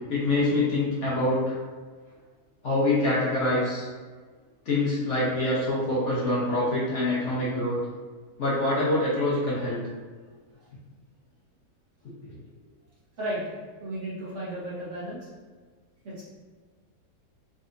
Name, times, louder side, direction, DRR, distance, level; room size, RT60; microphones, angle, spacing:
voice 1, 0.1-1.6 2.6-3.9 4.6-7.8 8.4-9.8, left 2 dB, 50° left, -7 dB, 1.1 m, -25 dB
voice 2, 13.8-15.3 16.0-16.2, right 1 dB, 50° right, -8 dB, 1.3 m, -34 dB
3.8 x 3.3 x 2.5 m, 1.4 s
omnidirectional pair, 1.8 m